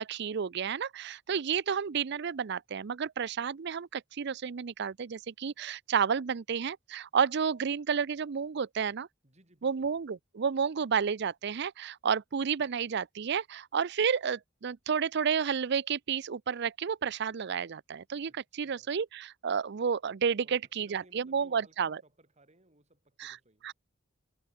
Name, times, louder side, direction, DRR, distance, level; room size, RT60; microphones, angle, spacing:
voice 1, 0.0-9.1 9.6-22.0 23.2-23.4 23.6-23.7, right 6 dB, 60° right, 0.5 m, -31 dB
voice 2, 9.2-9.9 18.3-19.0 20.4-23.7, right 1 dB, 35° right, 6.6 m, -63 dB
head